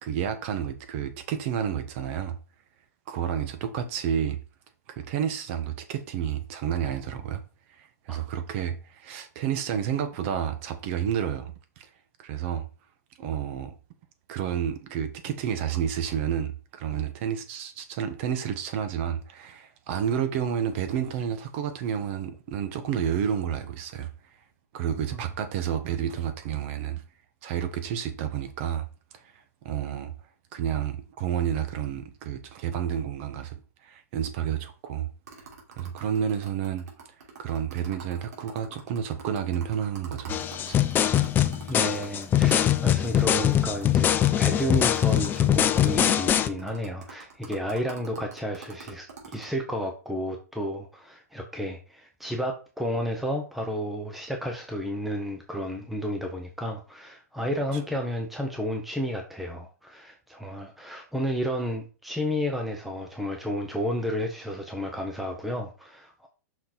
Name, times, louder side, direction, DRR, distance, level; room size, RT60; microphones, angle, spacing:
voice 1, 0.0-2.4 3.1-4.4 4.9-7.4 7.8-11.9 12.2-12.7 13.2-13.7 14.3-24.1 24.7-27.0 27.4-28.8 29.6-30.1 30.5-35.1 35.8-36.8 37.4-40.3 40.7-40.8, right 9 dB, 45° right, 1.4 m, -30 dB
sound 1, 35.3-43.2 43.5-43.6 43.8-49.5, right 5 dB, 85° right, 3.6 m, -45 dB
sound 2, 40.3-46.5, left 10 dB, 20° left, 0.6 m, -22 dB
voice 2, 41.7-66.3, equal, ahead, 1.0 m, -32 dB
5.9 x 5.8 x 4.4 m
hypercardioid pair, 135°, 9 cm